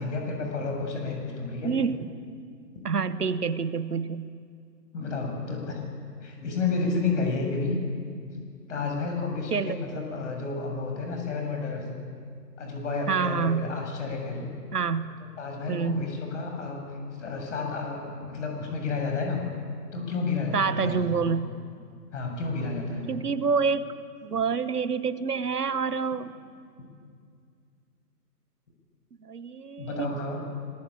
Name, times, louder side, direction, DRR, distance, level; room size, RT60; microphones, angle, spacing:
voice 1, 0.0-1.7 4.9-5.8 6.2-7.7 8.7-11.8 12.6-14.5 15.4-16.8 17.2-19.4 19.9-21.3 22.1-23.1 29.8-30.4, left 4 dB, 45° left, 2 dB, 7.4 m, -31 dB
voice 2, 1.6-2.0 2.8-4.3 9.5-9.8 13.1-13.7 14.7-15.0 15.7-16.0 20.5-21.5 23.1-23.9 24.2-26.4 29.2-30.1, right 5 dB, 65° right, 14 dB, 1.3 m, -27 dB
25.5 x 20.0 x 8.7 m, 2.2 s
figure-of-eight pair, 135°, 50 cm